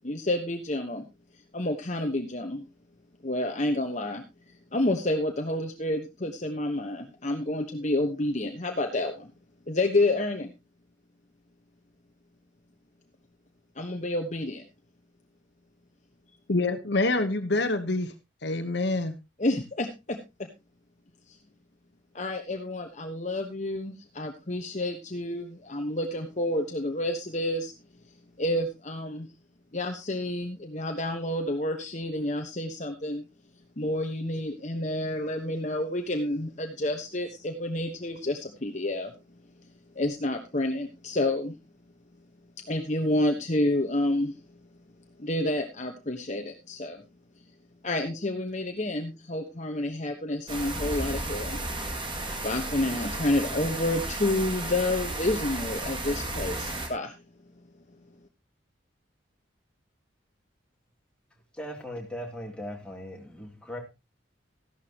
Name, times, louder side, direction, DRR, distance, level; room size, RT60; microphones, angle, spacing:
voice 1, 0.0-1.1 1.5-2.6 3.2-4.2 4.7-9.3 9.7-10.5 13.8-14.6 19.4-20.5 21.3-21.4 22.1-27.7 28.4-29.3 29.7-33.2 33.8-39.1 39.9-41.5 42.7-44.4 45.2-47.0 47.8-51.7 52.4-57.1, left 1 dB, 35° left, 1.2 m, -29 dB
voice 2, 16.5-18.1 18.4-19.2, left 2 dB, 60° left, 1.1 m, -26 dB
sound 1, 50.5-56.9, right 2 dB, 25° right, 2.2 m, -33 dB
voice 3, 61.6-63.8, equal, 5° left, 2.9 m, -38 dB
14.5 x 11.5 x 2.9 m
head